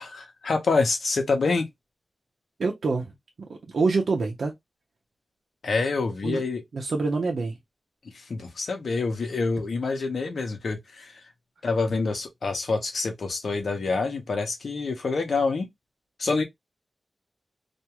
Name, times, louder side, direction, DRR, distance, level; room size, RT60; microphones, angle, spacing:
voice 1, 0.0-1.7 5.6-6.6 8.1-11.2 11.6-15.7 16.2-16.4, left 3 dB, 80° left, 0.9 m, -26 dB
voice 2, 2.6-3.1 3.5-4.5 6.2-6.4 6.7-7.5, right 4 dB, 80° right, 0.7 m, -26 dB
2.5 x 2.3 x 2.9 m
wide cardioid pair, 70°, 0 cm